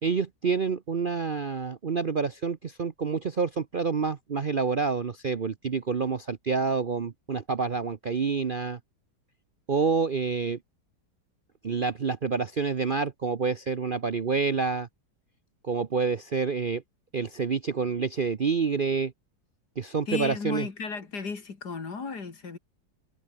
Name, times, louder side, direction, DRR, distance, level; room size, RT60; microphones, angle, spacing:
voice 1, 0.0-8.8 9.7-10.6 11.6-14.9 15.7-16.8 17.1-19.1 19.8-20.7, right 5 dB, 45° right, 0.7 m, -28 dB
voice 2, 20.1-22.6, left 4 dB, 65° left, 3.3 m, -34 dB
omnidirectional pair, 1.9 m